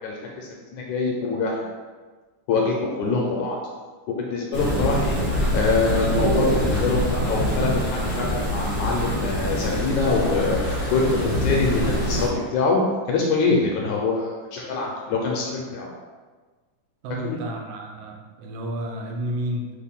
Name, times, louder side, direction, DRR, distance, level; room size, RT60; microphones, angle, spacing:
voice 1, 0.0-1.7 2.5-3.6 4.1-5.2 5.5-12.8 13.1-15.9 17.2-17.4, left 4 dB, 80° left, -1 dB, 1.8 m, -24 dB
sound 1, 4.5-12.3, equal, 55° right, 0.7 m, -24 dB
voice 2, 17.0-19.7, equal, 80° right, 2 dB, 2.1 m, -31 dB
6.4 x 2.2 x 3.5 m, 1.4 s
omnidirectional pair, 3.8 m